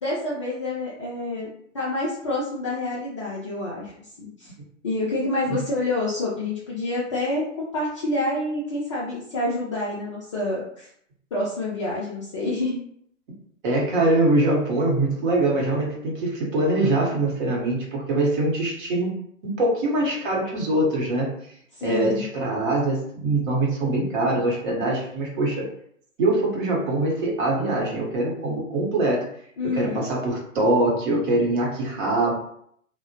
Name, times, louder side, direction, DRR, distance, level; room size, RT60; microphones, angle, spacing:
voice 1, 0.0-1.5 1.7-3.9 4.2-4.5 4.8-10.9 11.3-12.8 21.8-22.3 29.6-30.0, left 2 dB, 25° left, -6 dB, 0.3 m, -27 dB
voice 2, 13.6-19.1 19.6-21.3 21.8-25.6 26.2-29.3 29.7-32.3, right 2 dB, 40° right, -2 dB, 0.9 m, -23 dB
2.7 x 2.1 x 2.7 m, 0.68 s
figure-of-eight pair, 115°, 39 cm